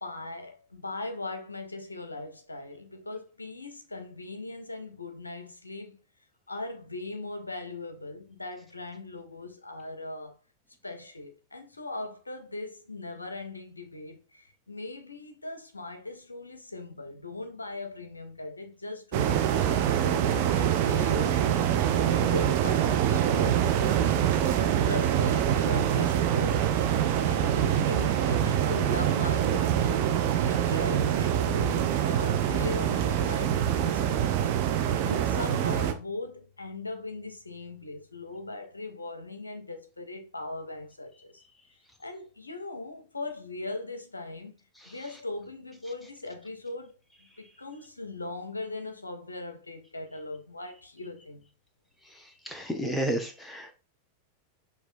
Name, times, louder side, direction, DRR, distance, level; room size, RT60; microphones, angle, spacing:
voice 1, 0.0-6.0 6.5-10.4 10.8-26.8 27.3-30.0 30.3-34.4 34.7-41.4 42.0-44.6 44.9-51.5, left 2 dB, 80° left, 0.5 m, -39 dB
sound 1, 19.1-35.9, right 10 dB, 45° right, 0.4 m, -25 dB
voice 2, 52.5-53.7, right 1 dB, 5° left, 0.7 m, -31 dB
5.9 x 2.2 x 2.5 m
figure-of-eight pair, 90°, 0 cm